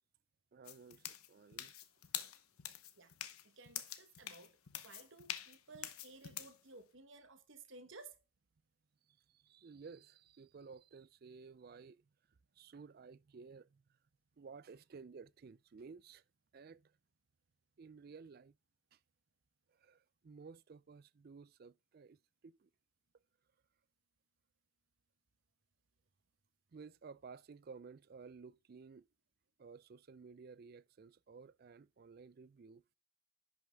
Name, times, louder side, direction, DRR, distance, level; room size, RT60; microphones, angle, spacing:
voice 1, 0.5-1.7 9.3-12.0 12.6-13.8 14.4-16.2 16.5-16.9 17.8-18.5 19.8-22.2 22.4-22.7 26.7-29.1 29.6-32.9, right 5 dB, 45° right, 0.4 m, -55 dB
sound 1, 0.6-6.6, left 11 dB, 90° left, 0.9 m, -46 dB
voice 2, 3.6-4.5 4.8-8.2, right 3 dB, 60° right, 1.3 m, -56 dB
10.5 x 5.8 x 3.5 m
head